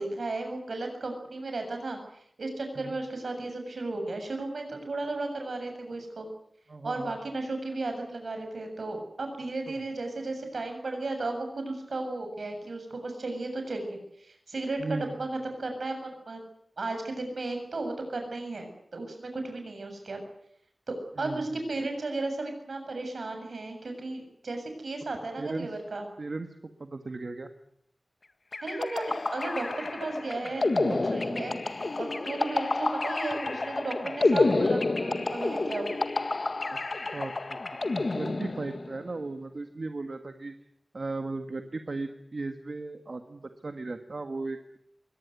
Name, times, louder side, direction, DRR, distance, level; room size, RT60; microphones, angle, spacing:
voice 1, 0.0-6.3 6.8-16.4 16.8-20.2 20.9-26.1 28.6-36.0, right 2 dB, 80° right, 5 dB, 7.3 m, -35 dB
voice 2, 6.7-7.2 9.7-9.8 14.8-15.1 21.2-21.6 25.4-25.7 26.2-27.5 34.4-34.8 36.7-36.8 37.1-37.6 37.9-40.5 40.9-44.8, right 3 dB, 60° right, 6 dB, 1.7 m, -36 dB
sound 1, 28.5-39.0, left 3 dB, 55° left, 1.8 m, -29 dB
23.0 x 18.5 x 9.5 m, 0.74 s
wide cardioid pair, 75°, 0 cm